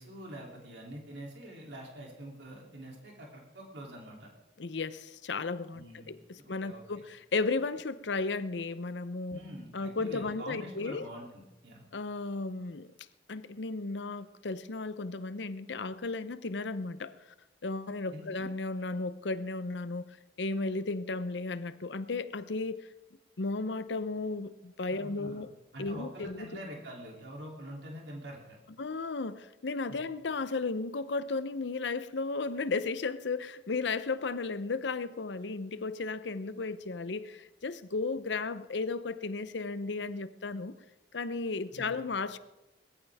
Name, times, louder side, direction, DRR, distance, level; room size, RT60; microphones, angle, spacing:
voice 1, 0.0-4.3 5.7-6.2 6.6-6.8 9.3-11.8 18.1-18.5 24.9-25.4 25.7-28.6 29.9-30.0 41.7-41.9, equal, 75° right, 3.1 m, -45 dB
voice 2, 4.6-9.4 9.7-11.1 11.9-12.9 13.3-17.1 17.6-22.9 23.4-25.5 25.8-26.5 28.8-40.7 41.1-42.4, left 3 dB, 80° left, 0.7 m, -34 dB
20.0 x 14.5 x 3.5 m
head